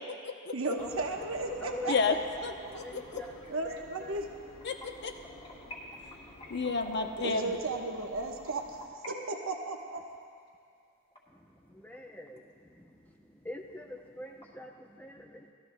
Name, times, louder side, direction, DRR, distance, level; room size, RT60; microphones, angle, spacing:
voice 1, 0.5-2.8 3.1-4.4 7.2-8.6 9.1-10.0, right 2 dB, 60° right, 2 dB, 1.0 m, -35 dB
sound 1, 0.8-8.9, left 1 dB, 80° left, 2.3 m, -52 dB
voice 2, 1.6-1.9 2.8-3.3 3.6-4.2 11.7-12.4 12.8-13.0 13.4-15.5, left 2 dB, 10° left, 1 dB, 0.5 m, -43 dB
voice 3, 2.4-3.2 4.6-5.1 6.5-7.4, left 4 dB, 50° left, 5 dB, 0.8 m, -31 dB
sound 2, 2.7-9.1 9.4-12.0 12.4-12.5 12.9-13.0 13.3-13.4 13.7-14.4, left 1 dB, 25° left, 2.5 m, -51 dB
19.5 x 13.5 x 2.2 m, 2.2 s
head